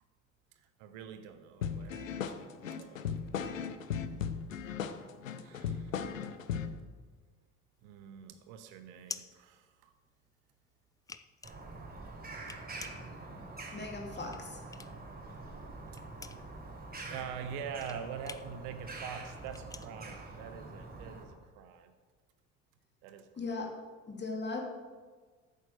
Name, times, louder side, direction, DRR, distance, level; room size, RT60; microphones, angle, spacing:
voice 1, 0.5-3.1 5.4-6.2 7.8-9.9 17.1-21.9 23.0-23.6, right 7 dB, 55° right, 9 dB, 1.0 m, -45 dB
sound 1, 1.6-6.8, left 7 dB, 80° left, 0.7 m, -37 dB
sound 2, 7.7-10.3 10.7-15.1 15.4-21.0, left 4 dB, 10° left, 0.4 m, -49 dB
Bird vocalization bird call bird song, 11.4-21.2, right 3 dB, 25° right, 3.9 m, -46 dB
voice 2, 13.7-14.9 23.4-23.8 24.1-24.6, left 3 dB, 25° left, 0 dB, 2.7 m, -38 dB
9.1 x 8.3 x 6.8 m, 1.5 s
figure-of-eight pair, 55°, 39 cm